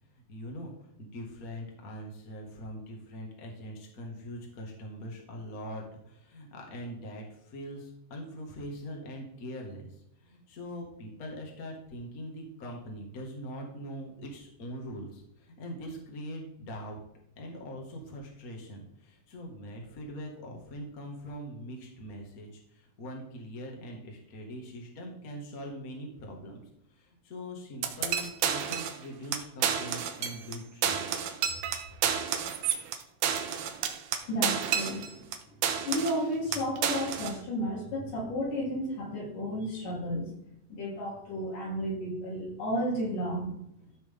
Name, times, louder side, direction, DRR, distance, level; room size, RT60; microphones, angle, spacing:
voice 1, 0.1-0.7 1.0-17.0 17.4-26.6 26.9-31.1, equal, 30° left, 0 dB, 1.8 m, -42 dB
sound 1, 27.8-29.0 29.3-29.4 29.6-30.6 30.8-35.4 35.6-36.2 36.5-37.4, right 8 dB, 75° right, 2.3 m, -30 dB
voice 2, 34.3-35.2 35.7-43.5, equal, 70° left, -5 dB, 5.2 m, -33 dB
14.5 x 6.0 x 3.7 m, 0.77 s
omnidirectional pair, 3.9 m